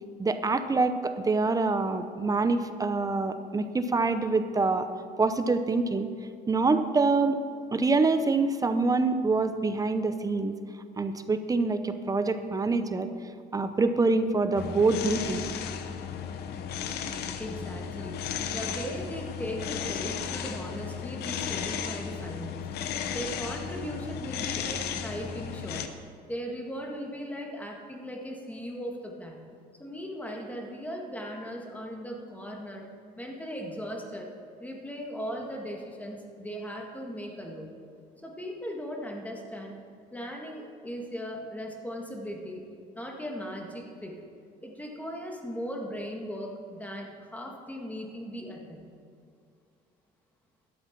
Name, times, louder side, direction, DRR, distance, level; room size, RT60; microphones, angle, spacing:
voice 1, 0.2-4.9 5.2-6.1 6.5-7.4 7.7-10.5 11.0-13.1 13.5-15.5, right 3 dB, 20° right, 10 dB, 0.7 m, -25 dB
sound 1, 14.5-25.9, left 8 dB, 75° left, 0.8 m, -35 dB
voice 2, 17.4-22.8 23.1-25.8 26.3-29.4 29.8-32.9 33.2-34.3 34.6-37.7 38.2-39.8 40.1-42.7 43.0-44.2 44.6-48.9, equal, 10° left, 0 dB, 1.9 m, -38 dB
12.0 x 7.9 x 6.0 m, 2.3 s
cardioid pair, 110°, 17 cm